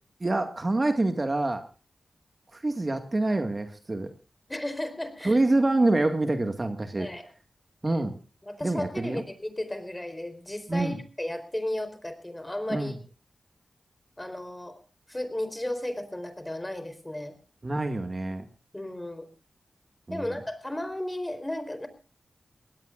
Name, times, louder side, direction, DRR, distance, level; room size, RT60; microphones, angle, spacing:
voice 1, 0.2-1.6 2.5-4.1 5.2-7.1 7.8-8.2 8.6-9.2 10.7-11.0 12.7-12.9 17.6-18.5 20.1-20.4, right 2 dB, 40° right, 6 dB, 2.1 m, -26 dB
voice 2, 4.5-5.4 7.0-7.3 8.5-12.9 14.2-14.8 15.1-17.4 18.7-19.3 20.1-21.9, left 1 dB, 20° left, 10 dB, 4.2 m, -34 dB
22.5 x 17.5 x 2.6 m, 0.34 s
cardioid pair, 45°, 0 cm